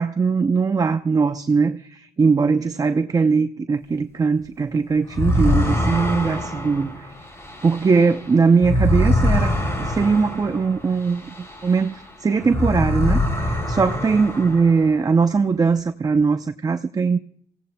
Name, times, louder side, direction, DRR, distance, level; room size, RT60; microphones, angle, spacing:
voice 1, 0.0-7.1 7.6-17.2, right 5 dB, 20° right, 8 dB, 0.6 m, -20 dB
sound 1, 5.1-12.0 12.4-15.1, left 1 dB, 15° left, 3.2 m, -24 dB
27.5 x 17.0 x 2.2 m, 0.65 s
cardioid pair, 110°, 17 cm